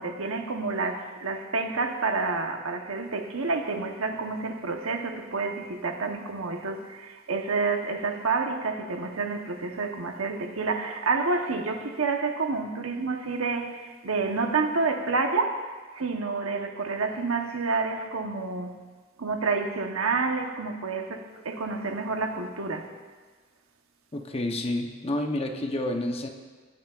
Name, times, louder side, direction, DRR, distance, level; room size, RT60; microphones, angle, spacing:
voice 1, 0.0-15.6 15.9-18.8 19.2-22.9, right 4 dB, 80° right, 4 dB, 1.1 m, -29 dB
voice 2, 24.1-26.3, left 1 dB, 30° left, 3 dB, 0.9 m, -29 dB
21.5 x 9.1 x 2.5 m, 1.4 s
head